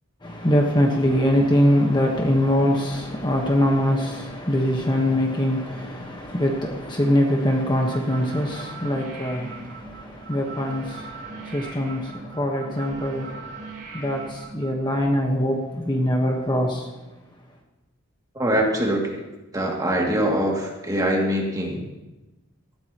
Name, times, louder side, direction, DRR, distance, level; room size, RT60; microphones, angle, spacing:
voice 1, 0.2-17.0, equal, 20° left, 1 dB, 1.3 m, -23 dB
sound 1, 7.9-15.0, right 4 dB, 55° right, 4.7 m, -40 dB
voice 2, 18.3-19.2 19.5-21.8, right 1 dB, 15° right, -2 dB, 2.5 m, -23 dB
19.0 x 14.5 x 3.0 m, 1.1 s
head